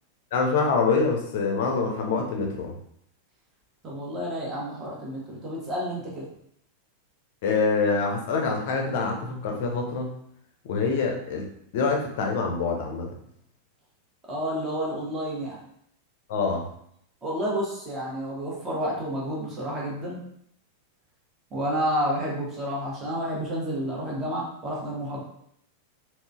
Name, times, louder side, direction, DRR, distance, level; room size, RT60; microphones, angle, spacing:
voice 1, 0.3-2.7 7.4-10.1 10.6-11.5 11.7-13.1 16.3-16.7, left 4 dB, 50° left, 1 dB, 0.5 m, -25 dB
voice 2, 3.8-6.2 14.3-15.6 17.2-20.2 21.5-25.2, equal, 25° right, -4 dB, 0.9 m, -30 dB
3.7 x 2.1 x 2.3 m, 0.70 s
figure-of-eight pair, 90°, 0 cm